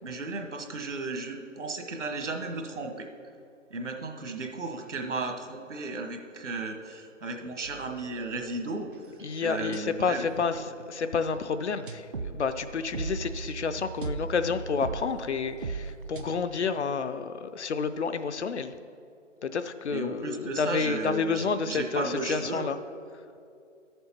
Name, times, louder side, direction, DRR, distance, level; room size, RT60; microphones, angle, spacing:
voice 1, 0.0-3.1 3.7-8.9 9.4-10.3 19.9-22.7, right 3 dB, 75° right, 5 dB, 1.2 m, -34 dB
sound 1, 7.6-9.8 10.3-11.1 11.6-16.3, right 4 dB, 45° right, 0.4 m, -38 dB
voice 2, 9.2-18.8 19.4-22.8, left 5 dB, 65° left, 11 dB, 0.6 m, -30 dB
11.5 x 6.9 x 4.3 m, 2.4 s
figure-of-eight pair, 150°, 37 cm